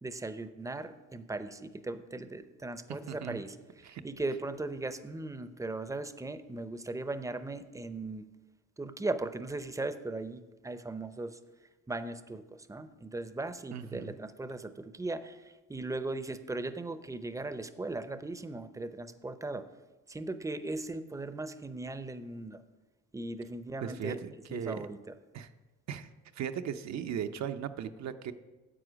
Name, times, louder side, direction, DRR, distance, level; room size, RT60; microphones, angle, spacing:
voice 1, 0.0-8.2 8.8-11.4 11.9-12.4 12.7-19.6 20.1-22.6 23.1-24.2 24.5-25.1, right 2 dB, 10° right, 11 dB, 0.6 m, -38 dB
voice 2, 3.1-3.4 3.8-4.0 13.7-14.1 23.8-24.9 25.3-25.5 25.9-26.1 26.4-28.3, right 8 dB, 65° right, 9 dB, 0.7 m, -37 dB
9.9 x 7.6 x 5.0 m, 1.2 s
cardioid pair, 90°, 30 cm